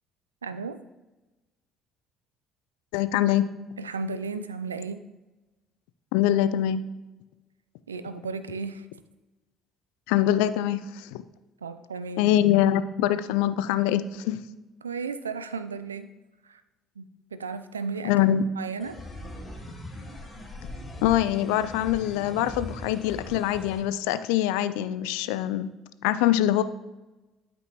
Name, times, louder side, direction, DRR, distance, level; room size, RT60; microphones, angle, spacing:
voice 1, 0.4-0.8 3.8-5.0 7.9-8.9 11.6-12.3 14.8-16.1 16.4-16.6 17.0-18.1 18.6-19.0, right 4 dB, 90° right, 12 dB, 0.4 m, -34 dB
voice 2, 2.9-3.5 6.1-6.8 10.1-11.2 12.2-14.4 18.0-18.5 21.0-25.7 26.0-26.6, left 12 dB, 70° left, 13 dB, 0.4 m, -24 dB
sound 1, 18.8-23.8, left 1 dB, 20° left, 2.2 m, -40 dB
12.0 x 5.2 x 2.9 m, 1.1 s
hypercardioid pair, 55°, 0 cm